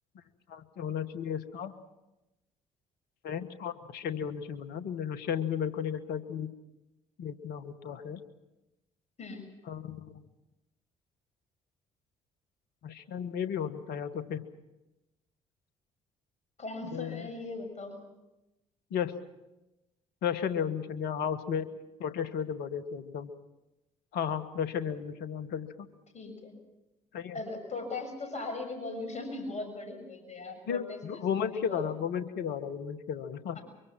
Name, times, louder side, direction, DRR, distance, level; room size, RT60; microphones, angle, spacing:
voice 1, 0.5-1.7 3.2-6.5 7.2-8.2 9.7-10.1 12.8-14.4 16.9-17.3 18.9-19.1 20.2-21.7 22.0-23.3 24.1-25.9 27.1-27.4 30.7-33.6, left 8 dB, 70° left, 12 dB, 1.5 m, -34 dB
voice 2, 16.6-18.0 26.1-26.5 27.3-32.0 33.5-33.6, left 3 dB, 40° left, 7 dB, 6.7 m, -39 dB
24.0 x 23.5 x 6.0 m, 0.97 s
hypercardioid pair, 45°, 17 cm